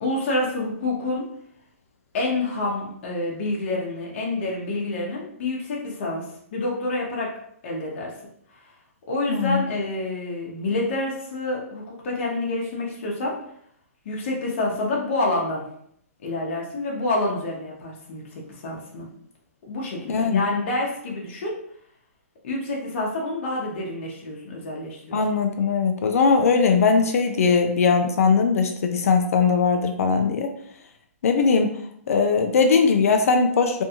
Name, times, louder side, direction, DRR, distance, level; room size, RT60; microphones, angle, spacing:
voice 1, 0.0-1.3 2.1-7.4 7.6-8.2 9.1-13.4 14.0-15.7 16.2-19.1 19.7-21.5 22.4-25.2, left 2 dB, 50° left, -2 dB, 0.8 m, -28 dB
voice 2, 9.3-9.6 20.1-20.4 25.1-30.5 31.2-31.7 32.1-33.8, left 5 dB, 65° left, 6 dB, 0.4 m, -20 dB
2.6 x 2.3 x 2.8 m, 0.68 s
hypercardioid pair, 140°, 8 cm